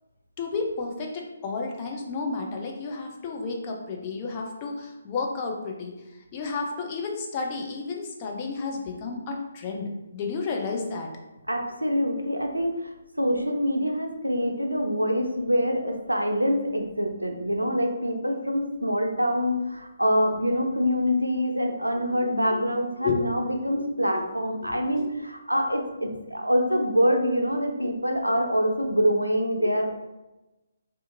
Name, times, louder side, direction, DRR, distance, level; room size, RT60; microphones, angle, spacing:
voice 1, 0.4-5.9 6.3-11.1 22.5-22.6 23.0-23.3 24.1-24.2 24.6-25.1 29.6-29.7, left 4 dB, 25° left, 1 dB, 0.4 m, -32 dB
voice 2, 11.5-29.9, equal, 85° right, 3 dB, 0.4 m, -25 dB
2.5 x 2.5 x 2.5 m, 1.0 s
figure-of-eight pair, 140°, 0 cm